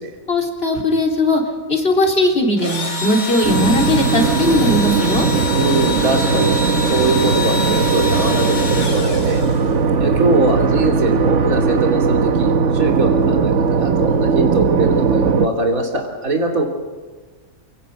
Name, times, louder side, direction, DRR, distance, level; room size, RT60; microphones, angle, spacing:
voice 1, 0.3-1.4 1.7-5.3, left 1 dB, 45° left, 2 dB, 3.9 m, -18 dB
Engine / Drill, 2.6-9.9, left 3 dB, 80° left, 3.6 m, -25 dB
sound 1, 3.4-15.5, right 5 dB, 60° right, 1.3 m, -18 dB
voice 2, 5.5-9.4 10.0-16.7, right 2 dB, 80° right, 1 dB, 3.4 m, -21 dB
28.0 x 18.5 x 8.4 m, 1.4 s
omnidirectional pair, 1.4 m